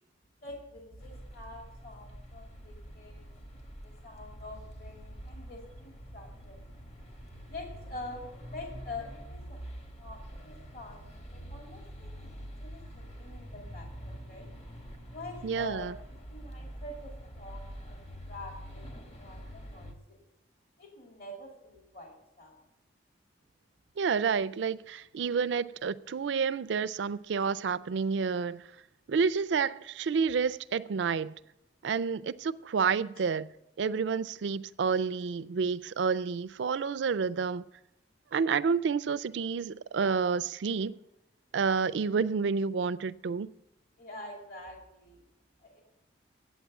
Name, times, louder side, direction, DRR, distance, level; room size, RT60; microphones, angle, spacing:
voice 1, 0.4-3.3 3.8-6.6 7.5-9.6 10.0-14.5 15.1-15.9 16.3-20.2 20.8-22.6 29.1-29.3 40.9-41.0 44.0-45.2 45.6-45.8, left 2 dB, 50° left, 2.6 m, -46 dB
sound 1, 1.0-19.9, equal, 35° left, 1.3 m, -46 dB
voice 2, 15.4-15.9 24.0-28.6 29.1-31.4 31.8-33.5 33.8-37.6 38.3-40.9 41.5-43.5, right 5 dB, 75° right, 0.4 m, -29 dB
8.7 x 8.1 x 8.5 m
head